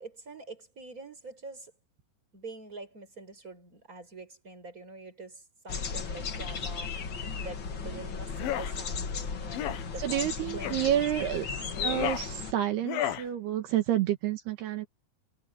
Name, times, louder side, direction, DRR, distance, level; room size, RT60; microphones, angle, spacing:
voice 1, 0.0-1.7 2.3-11.1 11.4-11.7, right 2 dB, 20° right, 6.2 m, -45 dB
sound 1, 5.7-12.5, left 5 dB, 50° left, 1.5 m, -35 dB
sound 2, 8.3-8.7 9.5-9.8 10.6-10.9 11.7-12.3 12.8-13.3, left 11 dB, 70° left, 2.9 m, -33 dB
voice 2, 10.0-11.5 11.8-14.9, right 12 dB, 75° right, 3.5 m, -29 dB
omnidirectional pair, 4.7 m